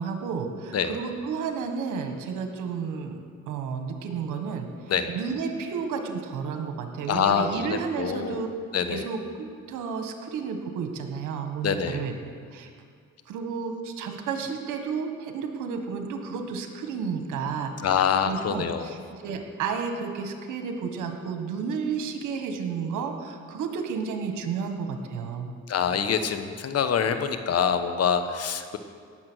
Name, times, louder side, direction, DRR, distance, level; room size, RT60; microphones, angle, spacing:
voice 1, 0.0-8.5 8.9-12.2 12.5-12.7 13.3-25.5, right 5 dB, 90° right, 5 dB, 1.6 m, -32 dB
voice 2, 7.1-8.4 8.7-9.0 11.6-12.0 17.8-18.9 25.7-28.8, left 7 dB, 55° left, 9 dB, 1.1 m, -25 dB
18.0 x 7.7 x 6.3 m, 2.1 s
cardioid pair, 90°, 30 cm